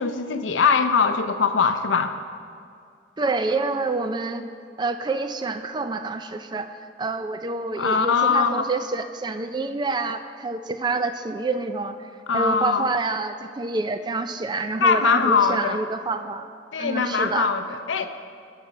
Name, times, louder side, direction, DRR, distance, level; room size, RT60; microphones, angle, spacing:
voice 1, 0.0-2.1 7.8-8.7 12.3-12.9 14.8-15.8 16.7-18.1, left 5 dB, 85° left, 9 dB, 0.6 m, -21 dB
voice 2, 3.2-4.4 4.8-12.0 12.3-16.5 16.8-17.5, right 3 dB, 25° right, 9 dB, 0.4 m, -27 dB
13.0 x 5.8 x 5.1 m, 2.3 s
head